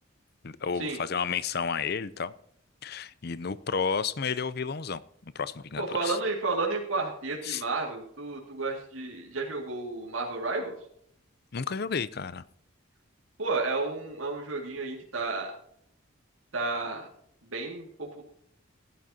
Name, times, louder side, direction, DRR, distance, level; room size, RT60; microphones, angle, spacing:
voice 1, 0.4-2.3 2.8-5.0 5.3-6.2 7.4-7.6 11.5-12.4, left 6 dB, 50° left, 17 dB, 0.6 m, -31 dB
voice 2, 5.8-10.7 13.4-15.5 16.5-17.1 17.4-18.2, right 3 dB, 85° right, -1 dB, 2.2 m, -32 dB
16.0 x 11.0 x 2.8 m, 0.67 s
head